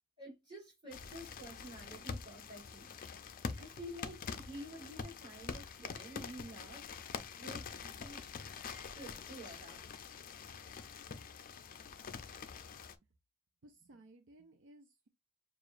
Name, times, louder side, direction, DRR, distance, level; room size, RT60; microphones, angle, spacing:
voice 1, 0.2-2.9 3.6-6.9 7.4-8.3 9.0-10.0, right 1 dB, 20° right, 2.7 m, -50 dB
sound 1, 0.9-13.0, left 5 dB, 40° left, 0.4 m, -46 dB
voice 2, 13.6-15.1, right 2 dB, 60° right, 0.5 m, -59 dB
6.7 x 2.4 x 2.4 m
head